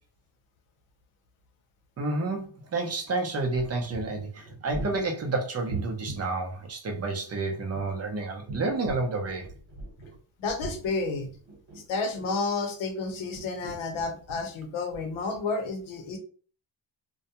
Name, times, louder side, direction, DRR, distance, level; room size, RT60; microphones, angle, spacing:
voice 1, 2.0-9.5, right 3 dB, 35° right, 0.5 m, -30 dB
sound 1, 3.8-6.3 7.5-10.2 10.5-12.6 13.1-14.6 14.9-15.0, right 3 dB, 60° right, 1.1 m, -40 dB
voice 2, 10.4-11.3 11.9-16.2, left 3 dB, 85° left, 0.8 m, -31 dB
2.3 x 2.1 x 2.8 m
cardioid pair, 125°, 47 cm